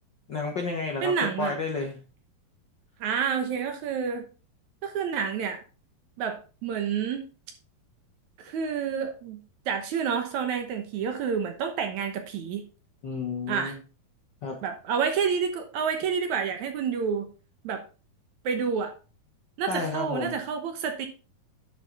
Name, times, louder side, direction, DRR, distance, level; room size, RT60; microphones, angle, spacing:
voice 1, 0.3-2.0 13.0-13.8 14.4-14.6 19.7-20.4, left 4 dB, 75° left, 3 dB, 1.0 m, -31 dB
voice 2, 1.0-1.6 3.0-4.3 4.8-5.6 6.2-7.2 8.4-12.6 13.5-13.8 14.6-17.3 17.6-17.8 18.4-18.9 19.6-21.1, right 6 dB, 65° right, 6 dB, 2.1 m, -29 dB
10.5 x 6.1 x 4.1 m, 0.34 s
omnidirectional pair, 4.1 m